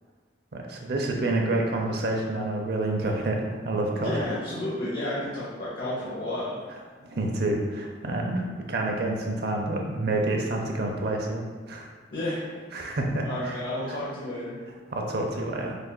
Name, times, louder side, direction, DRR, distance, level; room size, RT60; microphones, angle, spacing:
voice 1, 0.5-3.4 3.6-4.1 7.1-11.9 12.7-13.5 13.9-14.0 14.9-15.8, right 2 dB, 55° right, 1 dB, 0.5 m, -28 dB
voice 2, 4.0-6.6 12.1-12.5 13.2-14.5, left 1 dB, 50° left, -9 dB, 0.8 m, -31 dB
6.4 x 2.4 x 2.2 m, 1.5 s
head